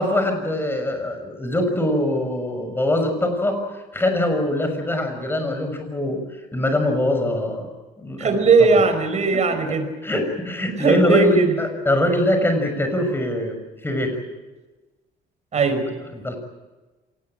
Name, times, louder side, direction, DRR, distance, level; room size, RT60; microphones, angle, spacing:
voice 1, 0.0-7.7 8.0-8.4 8.7-8.8 9.3-9.6 10.0-13.6 13.8-14.1 15.5-15.6 16.1-16.4, left 1 dB, 15° left, 6 dB, 6.5 m, -23 dB
voice 2, 8.2-9.9 10.8-11.5 15.5-16.0, right 4 dB, 40° right, 8 dB, 5.4 m, -18 dB
27.0 x 19.5 x 9.1 m, 1.2 s
cardioid pair, 110°, 17 cm